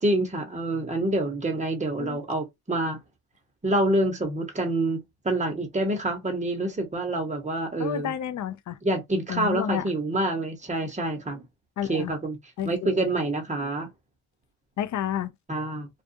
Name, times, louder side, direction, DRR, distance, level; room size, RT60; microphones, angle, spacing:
voice 1, 0.0-3.0 3.6-8.1 8.8-11.4 11.9-12.4 12.6-13.9 15.5-15.9, right 1 dB, 15° right, 0.9 m, -27 dB
voice 2, 7.8-8.8 9.3-9.8 11.8-12.1 12.6-13.0 14.8-15.3, left 10 dB, 40° left, 0.4 m, -30 dB
2.4 x 2.3 x 2.6 m
cardioid pair, 100°, 50 cm